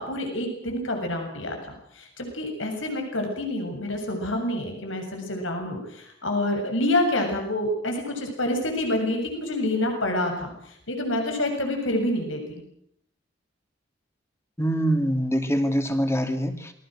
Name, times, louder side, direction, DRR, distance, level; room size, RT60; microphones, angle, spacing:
voice 1, 0.0-12.6, left 1 dB, 85° left, 4 dB, 7.4 m, -27 dB
voice 2, 14.6-16.7, equal, 15° left, 6 dB, 2.8 m, -24 dB
28.0 x 22.5 x 6.4 m, 0.69 s
head